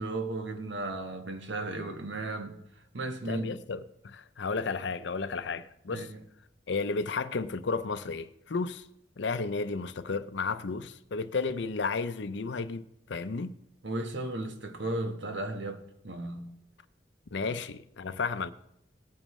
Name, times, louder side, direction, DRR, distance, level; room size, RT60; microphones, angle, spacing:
voice 1, 0.0-3.6 5.9-6.2 13.4-13.5 13.8-16.5 17.4-17.5, right 2 dB, 70° right, 1.4 m, -35 dB
voice 2, 3.3-6.1 6.7-8.9 9.2-13.6 17.3-18.5, left 4 dB, 65° left, 0.6 m, -33 dB
18.5 x 8.8 x 3.2 m
head